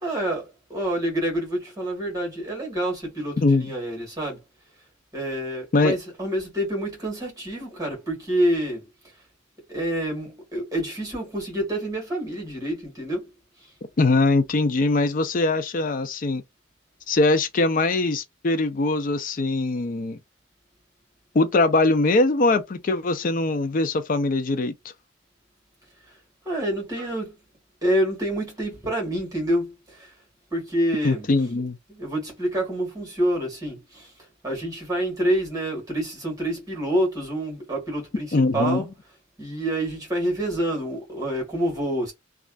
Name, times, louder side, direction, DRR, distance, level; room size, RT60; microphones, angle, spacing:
voice 1, 0.0-4.4 5.1-8.8 9.7-13.3 26.5-27.4 27.8-30.1 30.5-31.3 31.9-34.1 34.4-38.3 38.5-38.9 39.4-42.1, right 1 dB, 20° right, 1.8 m, -27 dB
voice 2, 3.4-3.7 5.7-6.0 14.0-16.4 17.1-20.2 21.3-24.7 31.0-31.8 38.3-38.9, left 2 dB, 45° left, 0.4 m, -22 dB
3.1 x 2.4 x 2.4 m
head